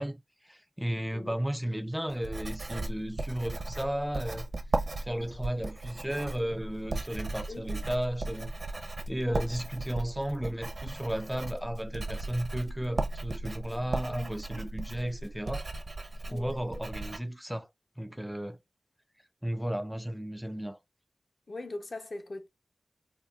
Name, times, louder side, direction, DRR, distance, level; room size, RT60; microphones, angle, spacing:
voice 1, 0.0-4.5 5.0-8.5 9.1-15.7 16.3-17.7 18.0-18.6 19.4-20.8, right 1 dB, 5° right, 0.4 m, -34 dB
Writing, 2.1-17.2, right 2 dB, 55° right, 0.5 m, -36 dB
voice 2, 16.3-16.6 21.5-22.5, left 2 dB, 55° left, 0.6 m, -41 dB
3.7 x 2.2 x 2.3 m
wide cardioid pair, 65°, 0 cm